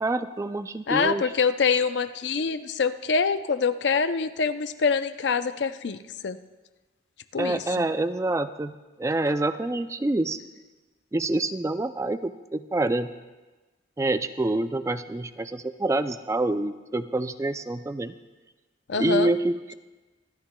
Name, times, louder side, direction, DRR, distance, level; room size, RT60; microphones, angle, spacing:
voice 1, 0.0-1.3 7.4-8.7 9.0-10.4 11.1-13.1 14.0-18.1 19.0-19.7, right 2 dB, 15° right, 11 dB, 0.3 m, -27 dB
voice 2, 0.9-6.4 7.3-7.9 18.9-19.3, left 5 dB, 70° left, 11 dB, 0.5 m, -25 dB
26.0 x 12.5 x 2.2 m, 1.2 s
head